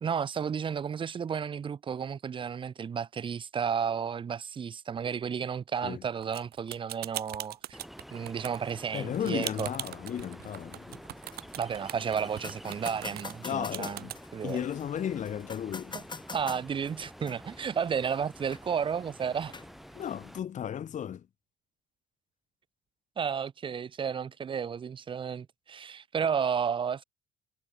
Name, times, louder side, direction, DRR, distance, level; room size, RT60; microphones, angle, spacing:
voice 1, 0.0-7.8 8.1-9.7 11.5-14.0 14.3-14.6 16.3-19.6 23.2-27.0, right 7 dB, 30° right, 0.6 m, -32 dB
sound 1, 6.2-14.2, right 14 dB, 70° right, 1.3 m, -40 dB
Ocean, 7.7-20.4, equal, ahead, 5.1 m, -49 dB
voice 2, 8.9-11.0 13.4-14.1 14.4-16.0 19.9-21.3, left 9 dB, 45° left, 1.7 m, -34 dB
sound 2, 10.4-20.4, left 4 dB, 25° left, 5.8 m, -47 dB
cardioid pair, 110°, 17 cm